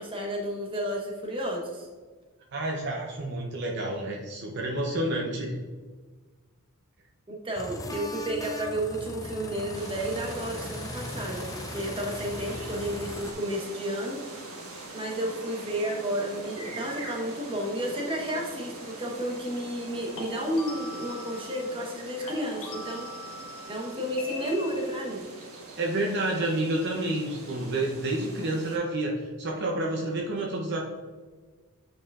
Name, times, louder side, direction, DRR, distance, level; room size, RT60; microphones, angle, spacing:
voice 1, 0.0-1.9 7.3-14.2 14.9-23.1 23.7-25.3, right 1 dB, 25° right, -1 dB, 1.2 m, -32 dB
voice 2, 2.5-5.6 25.8-30.9, right 1 dB, 50° right, 0 dB, 0.7 m, -29 dB
sound 1, 7.6-13.3, left 2 dB, 15° left, 0.4 m, -38 dB
sound 2, 9.7-28.8, right 2 dB, 75° right, 1.6 m, -43 dB
sound 3, 15.2-15.5 20.2-22.0 22.3-25.2, left 2 dB, 65° left, 1.5 m, -42 dB
8.4 x 4.8 x 2.5 m, 1.4 s
head